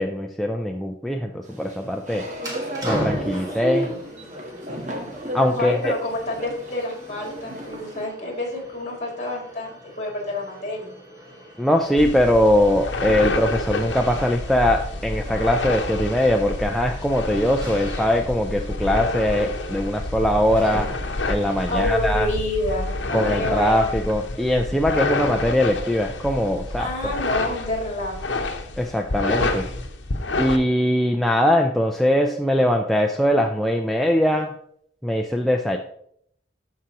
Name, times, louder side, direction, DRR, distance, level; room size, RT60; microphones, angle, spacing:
voice 1, 0.0-2.3 2.8-3.9 5.3-5.9 11.6-20.9 21.3-22.3 23.1-27.1 28.8-29.6 30.4-34.5 35.0-35.8, equal, ahead, 2 dB, 0.4 m, -21 dB
sound 1, 1.5-8.1, equal, 40° right, 1.3 m, -33 dB
sound 2, 2.4-21.3, equal, 20° right, 1.7 m, -39 dB
voice 2, 5.6-10.9 21.7-23.9 26.8-28.3, left 1 dB, 40° left, 0 dB, 2.5 m, -28 dB
sound 3, 12.0-30.6, left 2 dB, 75° left, 0.9 m, -28 dB
13.0 x 4.8 x 2.9 m, 0.68 s
head